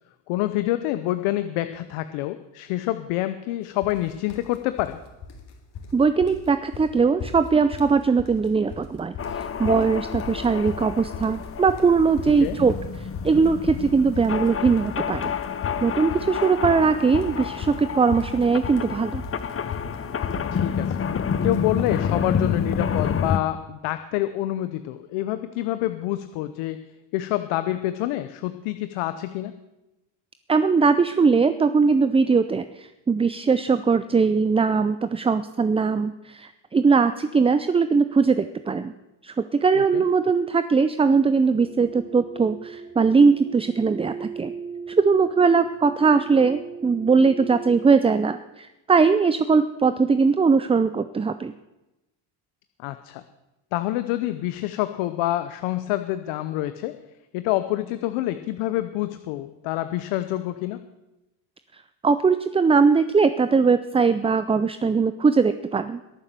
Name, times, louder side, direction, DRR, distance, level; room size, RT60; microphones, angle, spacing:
voice 1, 0.3-5.0 12.4-12.6 20.5-21.0 21.4-26.8 27.1-29.6 39.8-40.0 52.8-53.2 53.7-56.9 57.3-60.8, left 15 dB, 90° left, 11 dB, 0.9 m, -27 dB
sound 1, 3.8-4.0 4.3-4.9 5.2-5.9 6.2-6.5 6.7-6.9 7.2-7.9 8.2-8.9 9.1-22.0, left 6 dB, 55° left, 3.5 m, -35 dB
voice 2, 5.9-9.1 9.6-12.7 13.2-15.3 15.8-19.2 30.5-38.9 39.2-44.5 45.0-51.5 62.0-66.0, right 5 dB, 15° right, 11 dB, 0.4 m, -20 dB
sound 2, 9.2-23.4, left 7 dB, 30° left, 0.8 m, -29 dB
sound 3, 41.6-48.0, right 5 dB, 40° right, 2.8 m, -38 dB
21.5 x 7.3 x 6.8 m, 0.98 s
cardioid pair, 105°, 48 cm